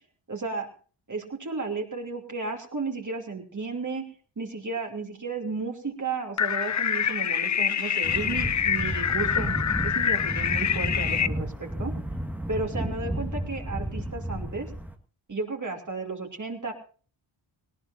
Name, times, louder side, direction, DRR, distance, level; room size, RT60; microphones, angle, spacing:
voice 1, 0.3-0.7 1.1-4.1 4.4-11.9 12.5-14.7 15.3-16.7, right 3 dB, 35° right, 1 dB, 3.0 m, -33 dB
sound 1, 6.4-11.3, left 8 dB, 35° left, 0.6 m, -26 dB
sound 2, 8.0-14.9, equal, 5° right, 1.8 m, -32 dB
18.5 x 17.5 x 2.7 m, 0.40 s
cardioid pair, 60°, 49 cm